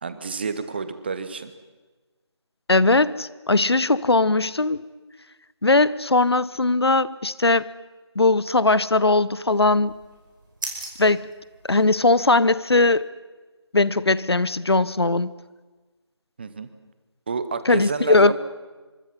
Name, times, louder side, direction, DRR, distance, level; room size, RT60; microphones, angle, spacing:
voice 1, 0.0-1.5 16.4-16.7 17.3-18.3, right 5 dB, 20° right, 12 dB, 1.0 m, -29 dB
voice 2, 2.7-4.8 5.6-7.7 8.2-10.0 11.0-11.2 11.7-13.1 13.7-15.3 17.7-18.3, left 3 dB, 65° left, 18 dB, 0.9 m, -19 dB
sound 1, 9.5-12.3, right 2 dB, 45° right, 5.3 m, -39 dB
25.0 x 24.0 x 5.6 m, 1.3 s
figure-of-eight pair, 160°, 15 cm